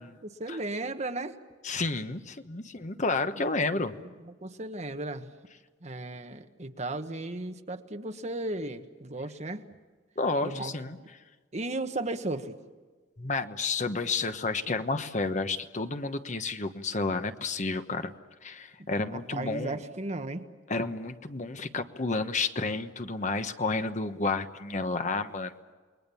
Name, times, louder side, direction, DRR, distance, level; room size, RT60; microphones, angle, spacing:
voice 1, 0.2-1.4 3.7-5.3 5.8-9.6 10.4-10.7 11.5-12.5 19.1-20.4, right 2 dB, 40° right, 7 dB, 1.4 m, -35 dB
voice 2, 1.6-3.9 10.2-11.0 13.2-18.1 18.4-19.8 20.7-25.5, left 3 dB, 40° left, 8 dB, 1.2 m, -31 dB
29.0 x 21.5 x 7.1 m, 1.4 s
head